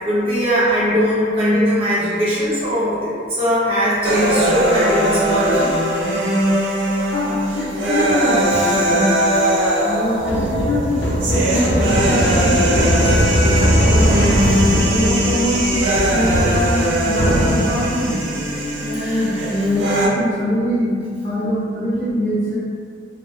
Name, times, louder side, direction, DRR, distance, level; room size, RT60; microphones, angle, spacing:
voice 1, 0.0-5.7 8.5-9.2 10.3-10.8 11.5-12.0 13.9-14.1 14.4-14.5 18.9-19.2, equal, 30° right, -9 dB, 0.5 m, -21 dB
sound 1, 4.1-20.1, right 1 dB, 90° right, 0.5 m, -20 dB
voice 2, 7.0-9.1 9.8-11.0 11.3-12.9 13.4-14.1 14.9-18.2 18.8-20.9 21.2-22.6, equal, 30° left, -12 dB, 0.5 m, -23 dB
sound 2, 10.2-18.0, equal, 85° left, 0.4 m, -19 dB
2.6 x 2.1 x 2.3 m, 2.2 s
head